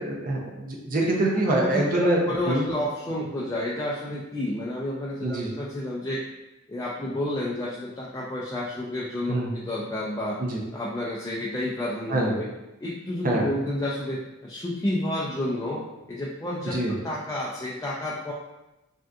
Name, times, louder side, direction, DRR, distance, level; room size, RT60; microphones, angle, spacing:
voice 1, 0.0-2.6 5.2-5.5 9.3-9.5 10.4-10.6 12.1-12.3 13.2-13.5 16.7-16.9, right 1 dB, 45° right, -1 dB, 0.6 m, -25 dB
voice 2, 1.5-6.2 6.7-10.4 10.7-12.5 12.8-18.3, left 1 dB, 15° left, -5 dB, 0.3 m, -30 dB
3.4 x 2.6 x 2.4 m, 0.99 s
head